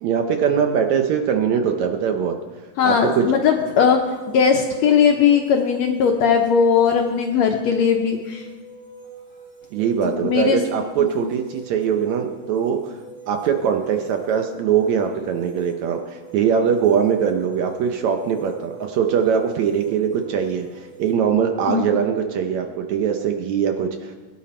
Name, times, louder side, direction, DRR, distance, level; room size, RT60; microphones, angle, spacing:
voice 1, 0.0-2.4 2.8-3.3 9.7-13.0 13.3-24.2, right 7 dB, 70° right, 5 dB, 1.9 m, -22 dB
voice 2, 2.8-4.0 4.3-8.5 10.2-10.6 21.7-21.9, left 7 dB, 75° left, 3 dB, 1.7 m, -18 dB
sound 1, 2.8-21.1, right 4 dB, 20° right, 1.5 m, -43 dB
21.0 x 10.0 x 4.3 m, 1.3 s
omnidirectional pair, 3.9 m